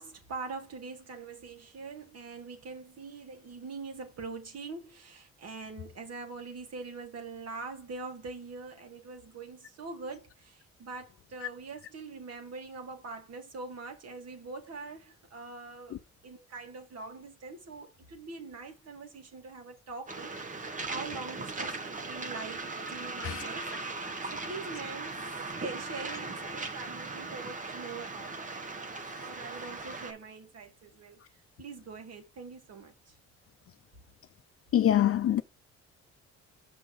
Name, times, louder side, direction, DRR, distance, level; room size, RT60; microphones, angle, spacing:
voice 1, 0.0-25.3 25.6-31.2 31.6-33.2, right 4 dB, 55° right, 2.0 m, -43 dB
Waves surf, 20.1-30.1, right 3 dB, 25° right, 1.1 m, -38 dB
voice 2, 34.7-35.4, left 11 dB, 50° left, 0.6 m, -24 dB
6.0 x 3.5 x 5.9 m
cardioid pair, 90°, 30 cm